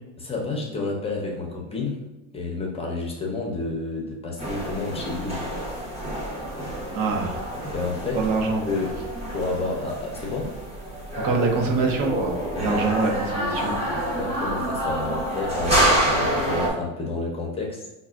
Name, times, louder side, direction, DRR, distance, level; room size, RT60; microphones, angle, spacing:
voice 1, 0.2-2.0 2.3-5.7 7.7-8.3 8.6-9.0 9.3-10.6 12.5-13.2 13.8-17.9, left 3 dB, 15° left, -1 dB, 0.7 m, -30 dB
sound 1, 4.4-16.7, right 1 dB, 15° right, 1.1 m, -27 dB
voice 2, 6.9-7.4 8.1-8.6 11.2-12.3 12.6-13.8, right 4 dB, 70° right, 2 dB, 0.9 m, -24 dB
5.3 x 2.3 x 2.4 m, 1.1 s
supercardioid pair, 130°, 37 cm